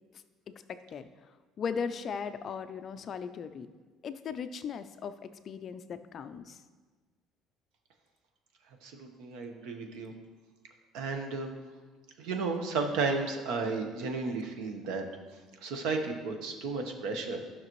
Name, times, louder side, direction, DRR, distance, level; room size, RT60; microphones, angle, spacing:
voice 1, 0.7-1.1 1.6-3.7 4.0-6.6, left 6 dB, 35° left, 10 dB, 0.4 m, -37 dB
voice 2, 8.8-10.1 10.9-11.5 12.2-15.0 15.6-17.4, right 4 dB, 70° right, 4 dB, 1.0 m, -33 dB
12.5 x 5.8 x 3.1 m, 1.4 s
cardioid pair, 165°, 0 cm